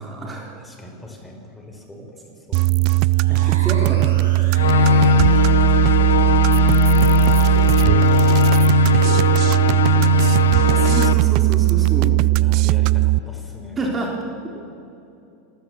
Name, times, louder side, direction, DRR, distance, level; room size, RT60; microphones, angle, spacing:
voice 1, 0.0-0.5 2.0-2.1 3.3-4.0 4.6-5.3 10.7-12.2 13.8-14.2 14.5-14.6, right 2 dB, 25° right, -1 dB, 3.7 m, -28 dB
voice 2, 0.5-2.0 2.4-2.6 3.8-4.4 5.8-6.5 7.2-11.3 12.3-13.8, left 1 dB, 10° left, 3 dB, 4.5 m, -39 dB
sound 1, 2.5-13.2, right 22 dB, 55° right, 0.4 m, -17 dB
Charge up, 3.1-5.8, right 3 dB, 85° right, 5.0 m, -39 dB
sound 2, 4.5-11.1, left 8 dB, 80° left, 1.0 m, -19 dB
27.0 x 14.0 x 7.1 m, 2.7 s
hypercardioid pair, 90°, 0 cm